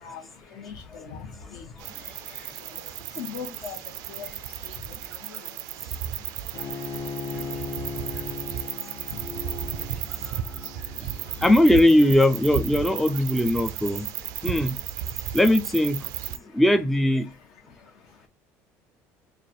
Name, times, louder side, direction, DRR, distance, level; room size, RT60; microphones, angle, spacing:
voice 1, 0.5-1.7 2.3-2.5 2.7-2.8 3.2-3.8 4.1-4.3 4.6-4.7 5.3-5.4 9.1-9.2 11.3-11.5 13.0-13.2, left 7 dB, 70° left, 1.1 m, -39 dB
sound 1, 1.8-16.4, right 11 dB, 70° right, 0.4 m, -34 dB
Bowed string instrument, 6.5-11.6, left 5 dB, 50° left, 0.8 m, -37 dB
voice 2, 11.4-14.1 14.4-14.8 15.3-16.1 16.5-17.3, left 1 dB, ahead, 0.3 m, -19 dB
3.3 x 2.3 x 4.2 m
cardioid pair, 140°, 6 cm